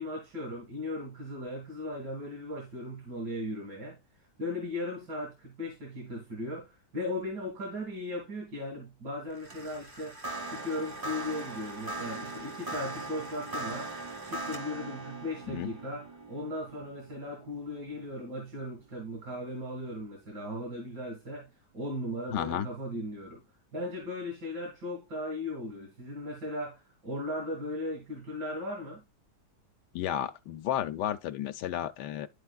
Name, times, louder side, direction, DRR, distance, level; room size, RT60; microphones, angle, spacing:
voice 1, 0.0-10.2 10.5-13.9 14.3-21.5 21.7-23.4 23.7-29.0, left 1 dB, 85° right, 2.5 m, -37 dB
sound 1, 9.3-18.7, right 2 dB, 30° right, 0.4 m, -40 dB
voice 2, 22.3-22.7 29.9-32.3, left 11 dB, 80° left, 1.2 m, -32 dB
12.0 x 4.2 x 2.3 m
omnidirectional pair, 1.8 m